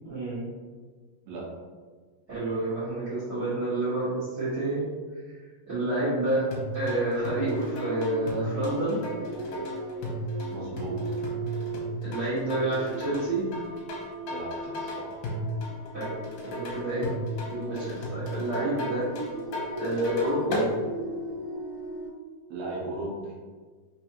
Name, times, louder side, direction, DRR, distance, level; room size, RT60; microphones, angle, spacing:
voice 1, 0.0-0.4 2.3-4.8 5.3-5.4 5.7-6.4 6.7-9.0 12.0-13.5 15.9-16.1 16.4-17.1 17.5-19.0 19.8-20.6, right 2 dB, 55° right, -12 dB, 1.0 m, -29 dB
sound 1, 6.5-20.7, equal, 70° left, 1.7 m, -35 dB
sound 2, 6.8-22.1, right 2 dB, 55° left, 1.2 m, -38 dB
voice 2, 10.5-11.0 14.2-15.1 22.5-23.3, right 2 dB, 80° right, -5 dB, 1.4 m, -36 dB
5.0 x 3.3 x 2.8 m, 1.5 s
omnidirectional pair, 4.1 m